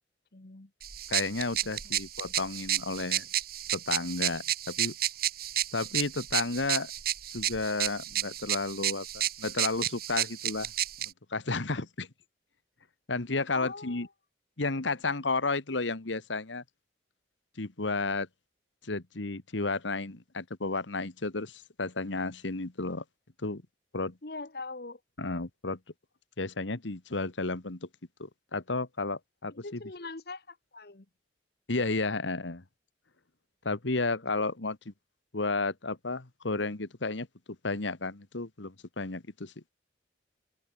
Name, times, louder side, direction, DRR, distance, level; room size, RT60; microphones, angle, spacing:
voice 1, 0.3-0.7 1.8-2.0 13.5-14.1 24.2-25.0 29.6-31.0, left 3 dB, 55° left, 1.3 m, -41 dB
sound 1, 0.8-11.1, right 12 dB, 50° right, 1.7 m, -32 dB
voice 2, 1.1-3.3 3.7-4.9 5.7-6.9 7.3-10.7 11.0-12.1 13.1-14.1 14.6-16.6 17.6-18.3 18.8-23.0 23.4-23.6 23.9-24.2 25.2-25.8 26.4-27.9 28.2-29.8 31.7-32.6 33.6-34.9 35.3-37.3 37.6-39.5, left 3 dB, 85° left, 1.6 m, -32 dB
open air
head